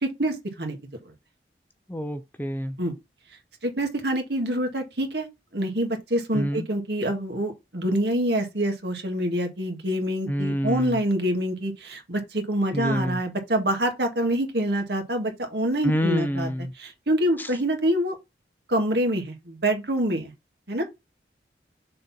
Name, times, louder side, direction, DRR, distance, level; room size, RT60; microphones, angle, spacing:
voice 1, 0.0-0.8 2.8-2.9 3.6-5.3 5.5-16.5 16.8-18.2 18.7-20.3 20.7-20.8, right 1 dB, 70° right, 2.0 m, -26 dB
voice 2, 1.9-2.8 6.3-6.7 10.3-11.0 12.7-13.2 15.8-16.7 17.4-17.5, equal, 10° left, 0.6 m, -27 dB
6.5 x 4.2 x 4.3 m
head